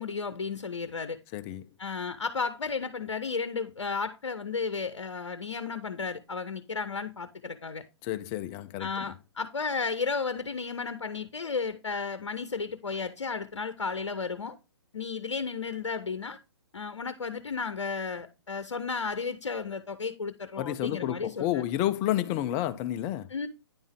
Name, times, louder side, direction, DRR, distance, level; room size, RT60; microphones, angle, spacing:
voice 1, 0.0-1.2 1.8-7.8 8.8-14.6 14.9-16.4 16.7-21.6 23.3-23.5, left 5 dB, 75° left, 0.6 m, -33 dB
voice 2, 1.3-1.7 8.0-9.1 20.6-23.3, left 13 dB, 20° left, 0.4 m, -30 dB
9.5 x 3.5 x 3.4 m
figure-of-eight pair, 130°, 15 cm